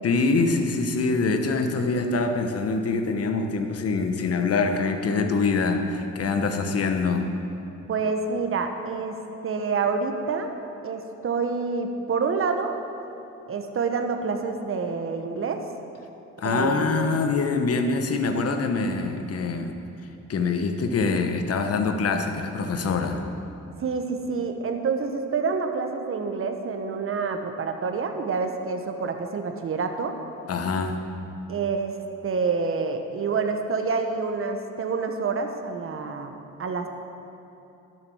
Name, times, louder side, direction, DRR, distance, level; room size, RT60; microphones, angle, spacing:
voice 1, 0.0-7.3 16.4-19.7 20.3-23.2 30.5-31.0, left 4 dB, 50° left, 6 dB, 1.2 m, -24 dB
voice 2, 7.9-10.5 10.8-12.8 13.5-15.7 16.4-17.2 23.8-30.2 31.5-32.0 32.2-36.3 36.6-36.9, right 4 dB, 45° right, 5 dB, 1.2 m, -27 dB
12.5 x 7.7 x 6.3 m, 3.0 s
cardioid pair, 90°, 30 cm